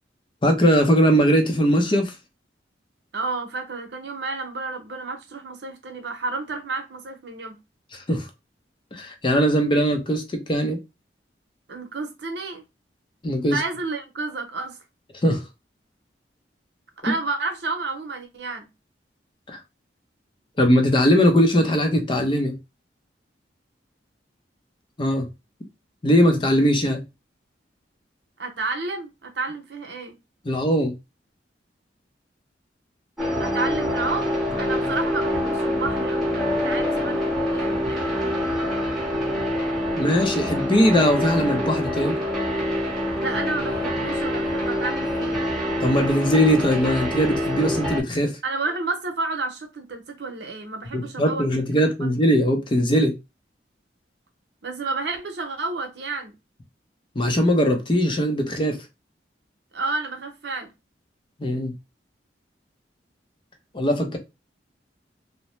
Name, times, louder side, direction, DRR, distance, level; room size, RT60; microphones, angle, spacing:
voice 1, 0.4-2.1 7.9-8.3 8.9-10.8 13.2-13.6 15.2-15.4 17.0-17.1 19.5-19.6 20.6-22.6 25.0-25.3 26.0-27.0 30.4-30.9 39.9-42.2 45.8-48.4 50.9-53.1 57.2-58.8 61.4-61.7 63.7-64.2, equal, 30° left, 0.6 m, -20 dB
voice 2, 3.1-7.6 11.7-12.6 13.5-14.8 17.0-18.7 28.4-30.2 33.4-38.1 43.1-45.5 48.4-51.4 51.8-52.2 54.6-56.3 59.7-60.7, right 3 dB, 70° right, 0.7 m, -31 dB
sound 1, 33.2-48.0, left 1 dB, ahead, 1.0 m, -25 dB
2.7 x 2.1 x 3.0 m
head